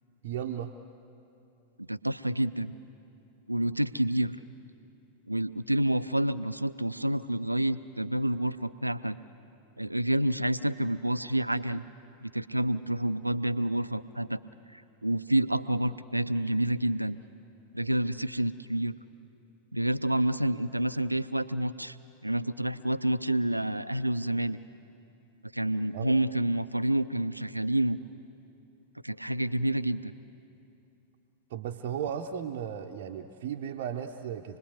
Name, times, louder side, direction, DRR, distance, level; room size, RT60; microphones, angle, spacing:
voice 1, 0.2-0.7 25.9-26.2 31.5-34.6, right 8 dB, 50° right, 2 dB, 0.8 m, -35 dB
voice 2, 1.8-2.7 3.5-4.4 5.3-9.2 9.8-11.8 12.2-14.4 14.7-17.2 17.7-18.9 19.7-22.0 22.2-24.6 25.5-28.0 29.0-30.1, right 1 dB, 85° right, 14 dB, 0.5 m, -28 dB
27.0 x 20.5 x 8.0 m, 2.8 s
figure-of-eight pair, 90°, 0 cm